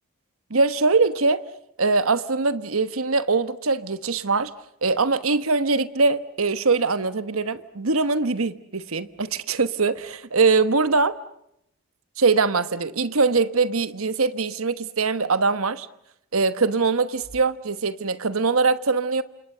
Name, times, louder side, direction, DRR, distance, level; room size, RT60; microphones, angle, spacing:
voice 1, 0.5-1.4 1.8-4.5 4.8-11.2 12.2-15.9 16.3-19.2, right 4 dB, 75° right, 1.2 m, -22 dB
29.5 x 27.0 x 6.7 m
head